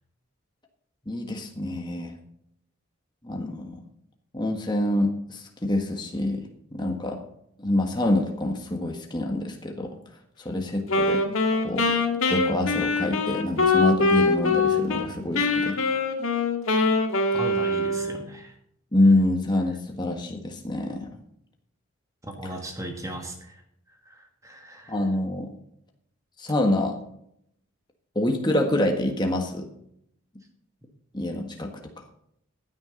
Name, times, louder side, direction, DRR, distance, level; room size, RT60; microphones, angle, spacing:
voice 1, 1.1-2.1 3.2-3.8 4.3-7.2 7.6-10.0 10.4-11.2 11.5-11.9 12.3-15.8 18.9-21.1 24.9-25.5 26.4-27.0 28.1-29.7 31.1-31.7, left 1 dB, 20° left, 3 dB, 1.4 m, -26 dB
Wind instrument woodwind instrument, 10.9-15.1 15.3-18.3, left 3 dB, 75° left, 1.9 m, -23 dB
voice 2, 17.3-18.5 22.2-23.6 23.9-25.1, right 1 dB, 15° right, 3 dB, 1.6 m, -37 dB
15.5 x 9.5 x 3.9 m, 0.72 s
head